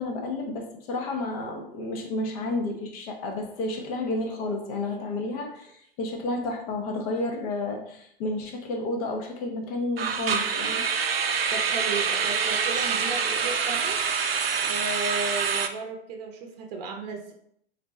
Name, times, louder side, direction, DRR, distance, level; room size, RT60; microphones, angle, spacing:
voice 1, 0.0-10.8, left 2 dB, 35° left, 3 dB, 0.8 m, -31 dB
sound 1, 3.8-4.1 4.3-4.5 5.0-5.1 10.0-15.7, right 6 dB, 75° right, 0.5 m, -26 dB
voice 2, 11.5-14.0 14.6-17.3, right 3 dB, 45° right, 3 dB, 0.8 m, -34 dB
4.2 x 2.7 x 3.2 m, 0.70 s
figure-of-eight pair, 100°, 30 cm